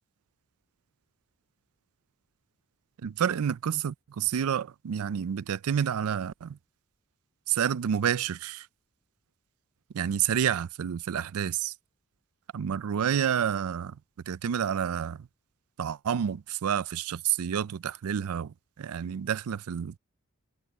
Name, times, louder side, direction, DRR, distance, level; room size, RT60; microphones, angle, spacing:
voice 1, 3.0-6.6 7.5-8.7 9.9-11.7 12.5-14.0 14.3-15.3 15.8-20.0, right 8 dB, 90° right, 0.4 m, -29 dB
head